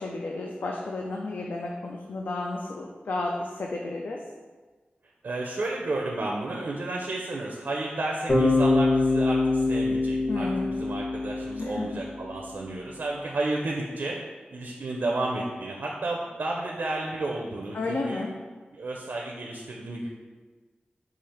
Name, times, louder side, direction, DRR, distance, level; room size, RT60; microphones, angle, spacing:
voice 1, 0.0-4.2 10.3-10.7 11.6-12.0 17.7-18.3, left 2 dB, 70° left, 0 dB, 0.4 m, -32 dB
voice 2, 5.2-14.2 14.5-18.2 18.7-20.1, right 2 dB, 70° right, -1 dB, 0.5 m, -32 dB
Bass guitar, 8.3-12.3, left 2 dB, 40° left, 1.2 m, -24 dB
4.9 x 2.4 x 4.3 m, 1.4 s
wide cardioid pair, 90°, 3 cm